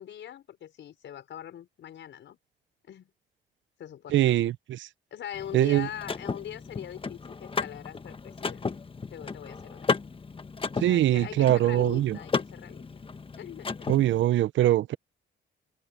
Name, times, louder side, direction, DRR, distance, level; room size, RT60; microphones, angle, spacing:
voice 1, 0.0-2.4 2.8-3.1 3.8-4.4 5.1-8.8 9.1-9.9 10.7-12.8 13.4-13.9, left 10 dB, 70° left, 5.8 m, -42 dB
voice 2, 4.1-4.9 5.5-5.9 10.8-12.2 13.9-15.0, right 13 dB, 70° right, 0.7 m, -23 dB
Car / Mechanisms, 5.3-14.3, left 4 dB, 25° left, 1.3 m, -34 dB
cardioid pair, 90°, 20 cm